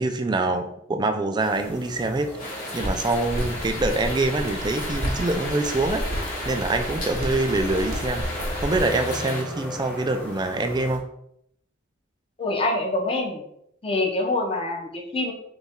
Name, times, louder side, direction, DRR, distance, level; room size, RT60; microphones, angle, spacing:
voice 1, 0.0-2.3 2.7-6.0 6.5-8.2 8.6-11.0, right 2 dB, 20° right, 6 dB, 0.3 m, -25 dB
sound 1, 1.4-11.0, left 1 dB, 10° left, 0.9 m, -38 dB
sound 2, 2.4-9.4, left 1 dB, 45° left, 1.1 m, -34 dB
sound 3, 2.8-8.8, equal, 75° right, 0.9 m, -32 dB
voice 2, 12.4-13.4 13.8-15.3, left 2 dB, 25° left, 1 dB, 0.7 m, -25 dB
4.0 x 2.4 x 3.5 m, 0.73 s
head